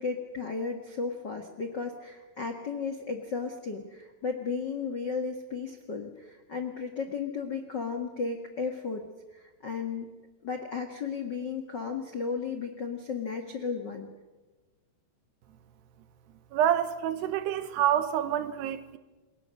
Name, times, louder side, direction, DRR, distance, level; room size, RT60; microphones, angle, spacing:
voice 1, 0.0-9.0 9.3-10.0 10.4-14.1, left 5 dB, 65° left, 1.1 m, -34 dB
voice 2, 16.5-19.0, right 10 dB, 80° right, 3.1 m, -27 dB
28.0 x 22.0 x 6.6 m
omnidirectional pair, 4.9 m